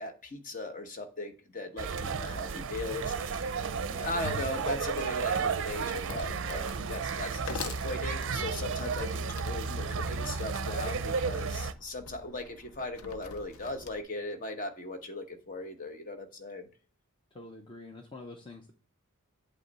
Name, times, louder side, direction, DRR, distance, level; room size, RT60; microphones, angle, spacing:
voice 1, 0.0-16.7, left 2 dB, 40° left, 5 dB, 1.0 m, -38 dB
sound 1, 1.8-11.7, right 5 dB, 55° right, 0.5 m, -33 dB
Wood, 2.1-14.0, left 4 dB, 70° left, 0.7 m, -48 dB
voice 2, 17.3-18.7, left 2 dB, 20° left, 3 dB, 0.7 m, -46 dB
8.3 x 3.2 x 5.3 m, 0.38 s
head